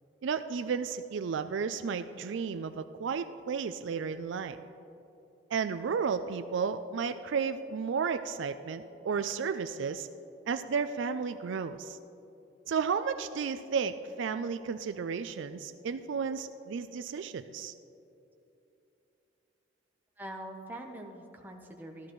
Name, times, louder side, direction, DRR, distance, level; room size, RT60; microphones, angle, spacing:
voice 1, 0.2-4.6 5.5-10.1 10.5-12.0 12.7-17.7, right 6 dB, 70° right, 10 dB, 0.4 m, -33 dB
voice 2, 20.2-22.1, right 1 dB, 10° right, 1 dB, 0.8 m, -43 dB
14.0 x 13.0 x 3.1 m, 2.9 s
head